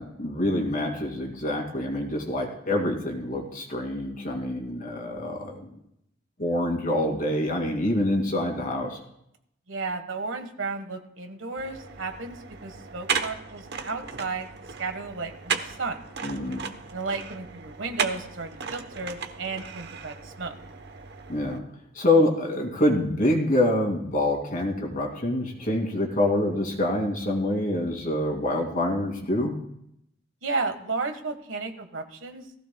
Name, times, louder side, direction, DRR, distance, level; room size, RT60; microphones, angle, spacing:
voice 1, 0.0-5.7 6.4-9.0 16.2-16.6 21.3-21.6 21.9-29.5, left 1 dB, 45° left, 2 dB, 2.5 m, -26 dB
voice 2, 9.7-14.5 14.8-16.0 16.9-20.5 30.4-32.5, right 4 dB, 80° right, 7 dB, 1.4 m, -33 dB
sound 1, 11.6-21.6, right 6 dB, 60° right, 0.9 m, -35 dB
18.0 x 15.5 x 2.3 m, 0.75 s
head